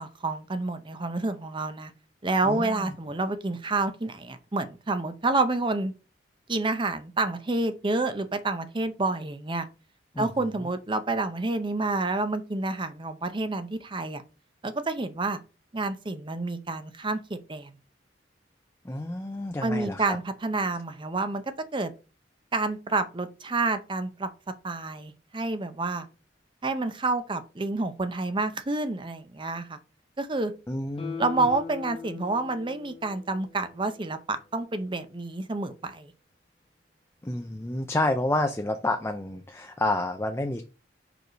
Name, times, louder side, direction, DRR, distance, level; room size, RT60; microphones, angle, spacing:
voice 1, 0.0-1.9 2.2-5.9 6.5-9.7 10.2-14.2 14.6-15.4 15.7-17.7 19.6-21.9 22.5-24.3 24.6-26.1 26.6-29.8 30.2-30.5 31.2-36.1, right 3 dB, 25° right, 0.6 m, -29 dB
voice 2, 2.4-2.9 10.1-10.3 18.8-20.2 30.7-31.4 37.2-40.7, left 1 dB, 15° left, 0.5 m, -29 dB
Guitar, 31.0-34.2 34.6-34.7, left 6 dB, 30° left, 1.1 m, -41 dB
5.1 x 4.7 x 5.0 m
head